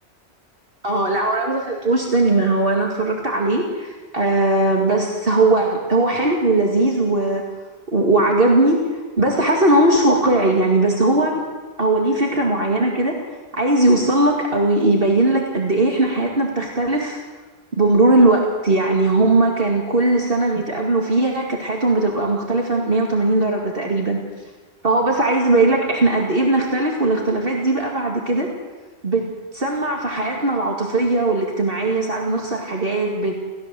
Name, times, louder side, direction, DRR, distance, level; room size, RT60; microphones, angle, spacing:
voice 1, 0.8-7.4 7.9-11.4 11.8-13.2 13.5-17.2 17.7-24.2 24.8-28.5 29.0-29.2 29.5-33.3, right 2 dB, 50° right, 0 dB, 2.5 m, -19 dB
29.5 x 14.5 x 7.7 m, 1.3 s
omnidirectional pair, 1.2 m